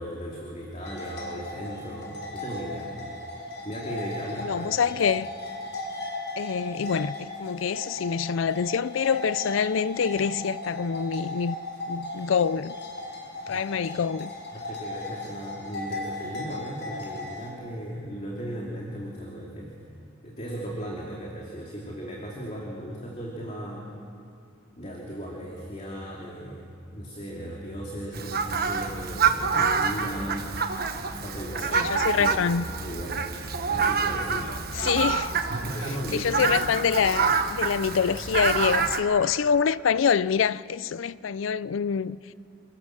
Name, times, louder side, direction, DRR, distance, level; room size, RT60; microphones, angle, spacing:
voice 1, 0.0-2.9 3.6-5.0 13.5-13.6 14.5-19.7 20.2-23.9 24.8-30.5 31.1-34.5 35.5-36.4, equal, 35° left, 2.8 m, -37 dB
sound 1, 0.8-17.5, left 2 dB, 60° left, 5.2 m, -36 dB
voice 2, 4.4-5.3 6.4-11.6 11.9-12.7 13.5-14.3 31.7-32.6 34.8-35.3 36.1-42.2, left 6 dB, 80° left, 0.4 m, -25 dB
Fowl, 28.1-39.0, right 5 dB, 50° right, 1.3 m, -27 dB
26.0 x 18.0 x 7.5 m
head